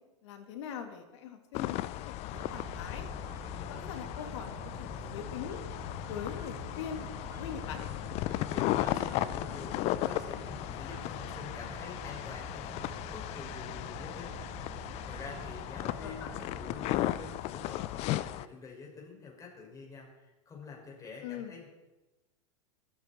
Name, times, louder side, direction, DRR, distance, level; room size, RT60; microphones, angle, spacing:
voice 1, 0.2-1.9 2.2-3.1 3.7-5.6 6.1-7.8 15.8-16.3 21.2-21.5, left 8 dB, 65° left, 6 dB, 2.5 m, -42 dB
sound 1, 1.5-18.5, left 15 dB, 40° left, 0.6 m, -36 dB
sound 2, 2.3-17.4, right 7 dB, 20° right, 0.9 m, -48 dB
voice 2, 8.5-14.4 14.8-21.7, left 4 dB, 20° left, -2 dB, 6.5 m, -47 dB
25.5 x 9.5 x 4.6 m, 1.0 s
hypercardioid pair, 105°, 16 cm